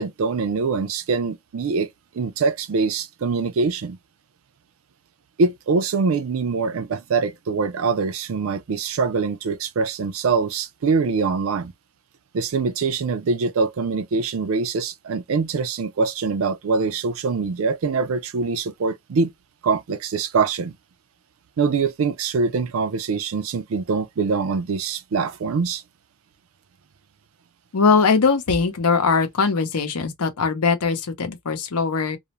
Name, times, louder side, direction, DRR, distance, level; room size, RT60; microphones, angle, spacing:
voice 1, 0.0-1.9 2.1-4.0 5.4-11.7 12.3-19.3 19.6-20.8 21.6-25.8, right 4 dB, 65° right, 0.4 m, -23 dB
voice 2, 27.7-32.2, left 5 dB, 90° left, 0.7 m, -21 dB
2.4 x 2.0 x 2.9 m
head